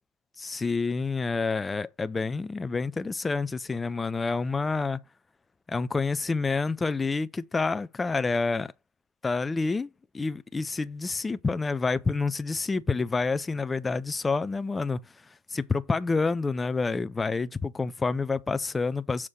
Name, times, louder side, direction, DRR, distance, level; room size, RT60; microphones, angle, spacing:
voice 1, 0.4-5.0 5.7-8.7 9.2-15.0 15.5-19.3, left 4 dB, 10° left, 0.4 m, -28 dB
7.2 x 3.1 x 5.5 m
figure-of-eight pair, 90°, 0 cm